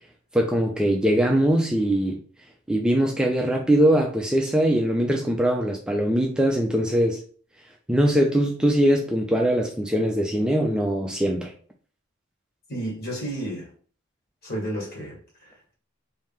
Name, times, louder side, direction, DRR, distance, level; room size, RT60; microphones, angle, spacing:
voice 1, 0.3-2.2 2.7-7.2 7.9-11.5, right 1 dB, 5° right, 0.4 m, -21 dB
voice 2, 12.7-13.7 14.4-15.8, right 1 dB, 50° left, 1.7 m, -32 dB
3.2 x 2.7 x 3.5 m
head